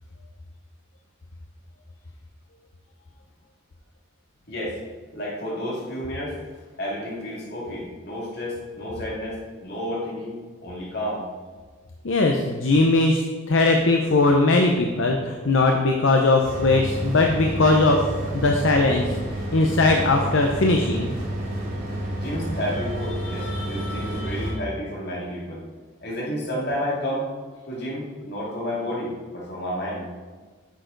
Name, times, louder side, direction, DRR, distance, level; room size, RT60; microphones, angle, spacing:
voice 1, 4.5-4.8 5.1-6.4 6.8-11.2 22.1-25.6 26.0-27.3 27.7-30.1, equal, 55° left, -4 dB, 2.4 m, -31 dB
voice 2, 12.0-18.0 18.3-19.1 19.5-21.1 23.2-24.5, left 2 dB, 70° left, 2 dB, 0.7 m, -20 dB
sound 1, 16.4-24.5, right 1 dB, 45° right, 2.2 m, -30 dB
9.4 x 6.6 x 3.9 m, 1.4 s
head